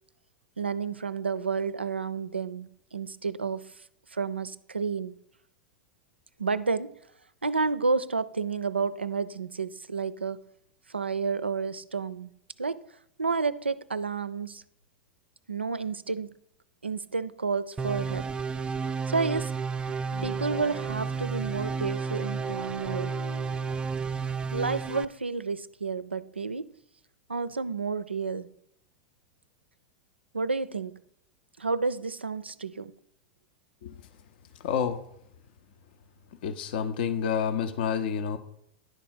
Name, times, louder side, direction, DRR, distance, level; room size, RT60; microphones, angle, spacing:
voice 1, 0.6-3.7 4.1-5.1 6.4-7.0 7.4-10.4 10.9-12.3 12.6-12.8 13.2-14.6 15.5-16.3 16.8-18.3 19.1-19.5 19.8-20.0 20.2-23.1 24.5-26.7 27.3-28.5 30.3-31.0 31.6-32.9, right 4 dB, 90° right, 0.3 m, -30 dB
sound 1, 17.8-25.0, right 5 dB, 15° right, 0.3 m, -32 dB
Bowed string instrument, 20.1-25.1, left 4 dB, 90° left, 0.9 m, -47 dB
voice 2, 34.6-35.0 36.4-38.4, left 7 dB, 60° left, 0.7 m, -28 dB
10.5 x 4.2 x 5.7 m
figure-of-eight pair, 90°, 6 cm